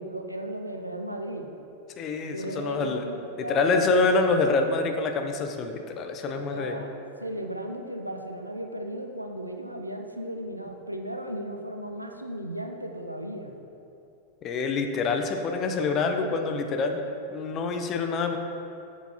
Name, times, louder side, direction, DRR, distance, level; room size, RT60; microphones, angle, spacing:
voice 1, 0.0-1.5 2.3-3.8 6.2-13.5, right 1 dB, 90° right, 4 dB, 0.6 m, -36 dB
voice 2, 2.0-3.0 3.4-6.8 14.4-17.0 17.3-18.4, left 3 dB, 30° left, 5 dB, 0.7 m, -26 dB
7.2 x 7.2 x 4.2 m, 2.8 s
figure-of-eight pair, 90°, 0 cm